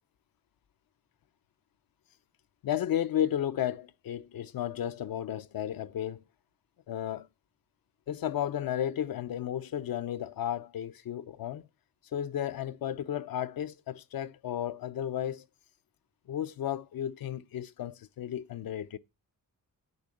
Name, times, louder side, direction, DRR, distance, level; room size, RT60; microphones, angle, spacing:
voice 1, 2.6-6.2 6.9-7.3 8.1-11.7 12.1-15.4 16.3-19.0, left 10 dB, 85° left, 0.7 m, -33 dB
8.4 x 6.8 x 8.4 m
wide cardioid pair, 140°, 35 cm